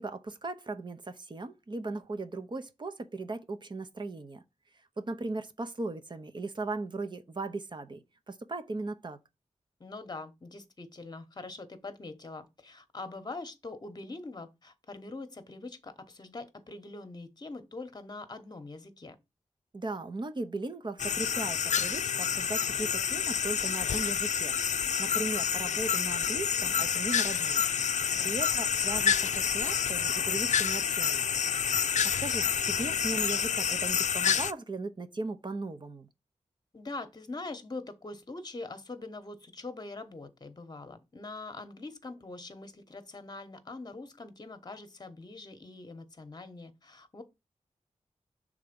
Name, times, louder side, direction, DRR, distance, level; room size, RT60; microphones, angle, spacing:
voice 1, 0.0-4.4 5.0-9.2 19.7-27.6 28.2-31.3 31.8-36.1, right 3 dB, 40° right, 0.8 m, -38 dB
voice 2, 9.8-19.2 28.1-28.6 36.7-47.2, left 3 dB, 35° left, 1.0 m, -43 dB
sound 1, 21.0-34.5, left 7 dB, 80° left, 0.4 m, -28 dB
6.6 x 3.6 x 5.2 m
wide cardioid pair, 105°, 12 cm